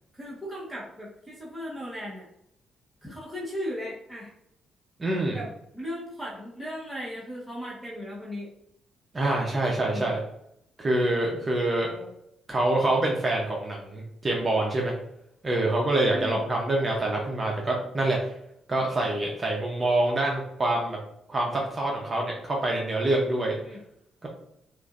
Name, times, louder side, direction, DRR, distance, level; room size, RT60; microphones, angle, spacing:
voice 1, 0.1-2.3 3.0-4.3 5.3-8.5 9.7-10.2 11.8-12.1 16.1-16.4 23.6-23.8, equal, 5° right, -7 dB, 1.3 m, -37 dB
voice 2, 5.0-5.4 9.1-10.2 10.8-11.9 12.5-14.9 15.4-18.3 18.7-21.0 21.3-23.6 24.2-24.3, right 1 dB, 30° right, -1 dB, 0.8 m, -26 dB
6.0 x 2.6 x 2.6 m, 0.77 s
cardioid pair, 80°, 0 cm